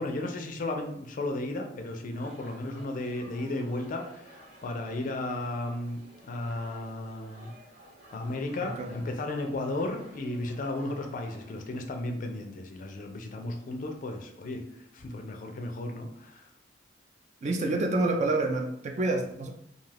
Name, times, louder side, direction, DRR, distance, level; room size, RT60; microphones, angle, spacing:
voice 1, 0.0-7.5 8.1-16.5, left 2 dB, 45° left, 4 dB, 0.4 m, -34 dB
sound 1, 2.1-11.9, equal, 55° right, 1.0 m, -54 dB
voice 2, 17.4-19.5, right 2 dB, 40° right, 3 dB, 0.4 m, -28 dB
2.4 x 2.3 x 3.2 m, 0.73 s
head